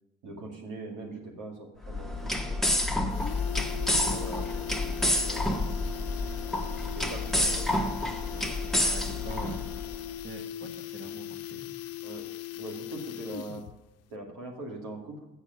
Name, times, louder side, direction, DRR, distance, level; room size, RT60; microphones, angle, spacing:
voice 1, 0.2-3.3 4.0-5.6 6.8-7.8 12.0-12.3 12.6-13.7 14.1-15.3, right 2 dB, 80° right, 0 dB, 2.2 m, -42 dB
sound 1, 1.8-10.0, left 1 dB, ahead, 0.7 m, -29 dB
DC Gear Motor, 2.2-2.3 2.6-2.7 2.9-13.8 14.1-14.2, left 14 dB, 55° left, 0.4 m, -39 dB
voice 2, 8.8-9.7 10.2-11.8 12.5-12.6, right 3 dB, 45° right, 3 dB, 1.4 m, -44 dB
7.5 x 6.5 x 6.4 m, 0.93 s
cardioid pair, 90°, 30 cm